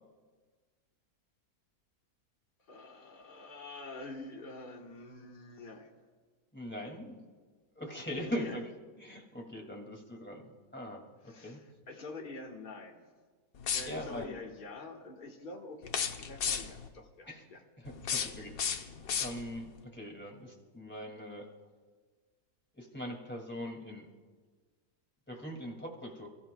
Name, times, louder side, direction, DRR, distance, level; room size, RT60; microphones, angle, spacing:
voice 1, 2.7-5.9 8.1-8.6 11.2-13.1 13.7-17.6, left 2 dB, 30° left, 0 dB, 1.5 m, -46 dB
voice 2, 6.5-7.2 7.8-8.7 9.0-10.5 10.7-11.6 13.9-14.4 17.3-17.4 17.8-18.9 19.2-21.5 22.8-24.1 25.3-26.3, equal, 5° left, 0 dB, 2.1 m, -41 dB
sound 1, 13.6-14.2 15.8-16.9 17.8-19.7, left 7 dB, 65° left, 1.3 m, -35 dB
29.0 x 15.0 x 2.3 m, 1.5 s
omnidirectional pair, 1.7 m